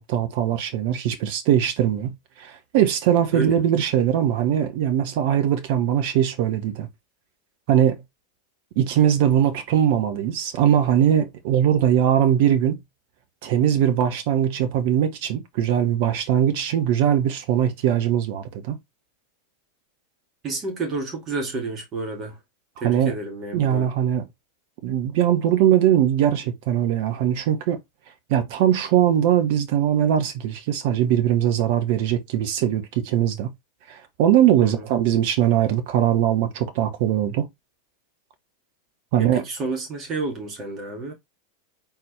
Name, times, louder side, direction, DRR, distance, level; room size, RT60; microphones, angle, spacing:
voice 1, 0.0-6.9 7.7-8.0 8.8-12.8 13.4-18.8 22.8-23.1 23.5-24.2 24.8-27.8 28.3-33.5 33.9-37.5 39.1-39.4, right 10 dB, 50° right, 1.0 m, -21 dB
voice 2, 20.4-22.4 22.8-23.9 34.6-34.9 39.2-41.1, right 3 dB, 30° right, 2.2 m, -30 dB
4.4 x 3.8 x 3.2 m
figure-of-eight pair, 90°, 0 cm